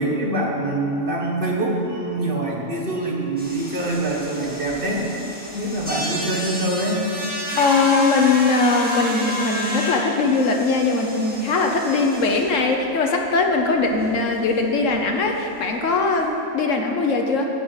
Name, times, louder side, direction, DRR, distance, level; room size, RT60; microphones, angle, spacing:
voice 1, 0.0-5.1 5.5-7.1, right 1 dB, 40° right, -2 dB, 1.6 m, -24 dB
sound 1, 3.4-12.7 13.0-13.1 13.4-13.5 13.8-14.1 14.5-14.6 14.8-15.0 16.2-16.3, left 1 dB, 5° right, 1.9 m, -31 dB
voice 2, 7.6-17.5, left 3 dB, 65° left, 3 dB, 1.2 m, -20 dB
11.5 x 5.0 x 8.1 m, 2.9 s
omnidirectional pair, 1.4 m